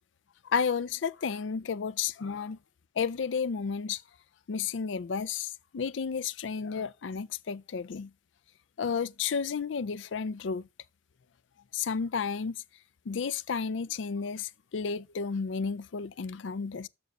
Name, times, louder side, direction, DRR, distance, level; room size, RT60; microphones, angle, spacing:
voice 1, 0.4-2.6 3.0-4.0 4.5-8.1 8.8-10.7 11.7-12.6 13.1-16.9, left 6 dB, 75° left, 0.5 m, -32 dB
7.1 x 6.5 x 6.6 m
head